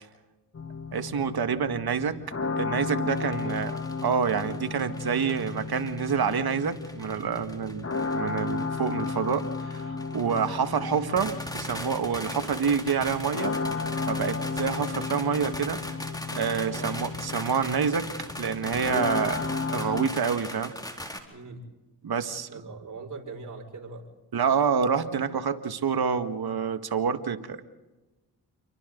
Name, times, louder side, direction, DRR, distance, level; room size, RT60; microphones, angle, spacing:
sound 1, 0.5-20.1, left 4 dB, 35° left, 2.2 m, -34 dB
voice 1, 0.9-2.2 2.6-7.9 8.1-13.6 14.1-15.8 16.3-20.7 22.0-22.6 24.3-27.6, right 6 dB, 65° right, 8 dB, 1.8 m, -28 dB
sound 2, 3.1-21.2, left 1 dB, 10° left, 4.2 m, -40 dB
voice 2, 3.1-3.6 5.1-5.3 10.1-10.4 16.7-16.9 21.3-21.6 22.5-24.0, right 3 dB, 50° right, 1 dB, 5.8 m, -41 dB
29.0 x 23.5 x 4.0 m, 1.1 s
cardioid pair, 55°, 40 cm